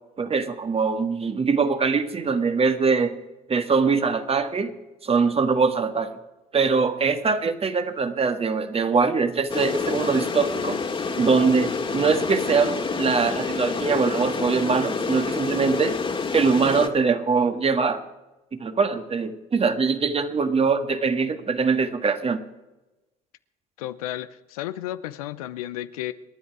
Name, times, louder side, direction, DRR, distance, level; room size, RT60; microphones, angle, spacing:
voice 1, 0.2-3.1 3.5-4.7 5.0-6.1 6.5-10.8 11.2-15.9 16.3-18.0 18.5-22.4, right 5 dB, 35° right, 9 dB, 1.7 m, -22 dB
sound 1, 9.5-16.9, left 4 dB, 30° left, 2.1 m, -28 dB
voice 2, 23.8-26.1, left 13 dB, 85° left, 13 dB, 0.7 m, -33 dB
27.5 x 10.5 x 4.7 m, 1.1 s
hypercardioid pair, 65°, 18 cm